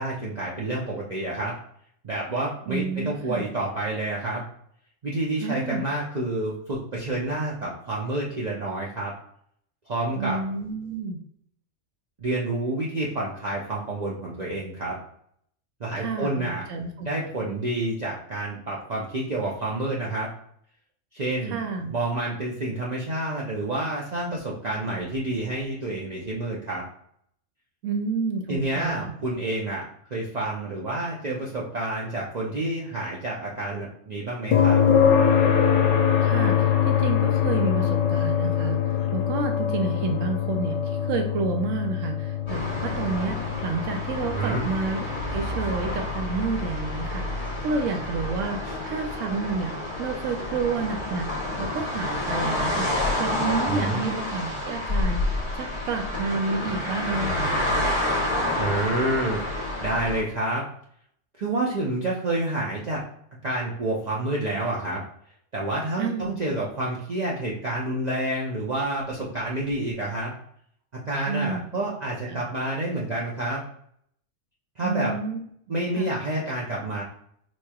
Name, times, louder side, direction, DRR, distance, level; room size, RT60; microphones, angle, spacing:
voice 1, 0.0-1.6 2.0-4.4 5.0-9.1 9.9-10.4 12.2-15.0 15.8-16.6 17.0-20.3 21.1-21.6 21.9-26.9 28.5-34.8 44.3-44.6 53.7-54.0 58.6-60.6 61.4-63.0 63.4-65.0 65.5-70.3 71.1-73.6 74.8-75.1 75.7-77.0, right 2 dB, 45° right, -5 dB, 0.6 m, -29 dB
voice 2, 2.7-3.4 5.4-5.8 10.2-11.2 15.9-17.1 21.4-21.9 27.8-29.1 36.2-51.3 51.6-52.9 53.2-57.6 66.0-66.3 71.3-71.7 72.3-72.4 74.8-75.4 76.0-76.1, right 4 dB, 85° right, 4 dB, 0.9 m, -30 dB
sound 1, 34.5-48.4 50.6-50.7, left 8 dB, 70° left, 0.9 m, -24 dB
sound 2, 42.5-60.2, left 1 dB, 25° left, 1.0 m, -29 dB
4.4 x 3.1 x 2.3 m, 0.68 s
omnidirectional pair, 1.3 m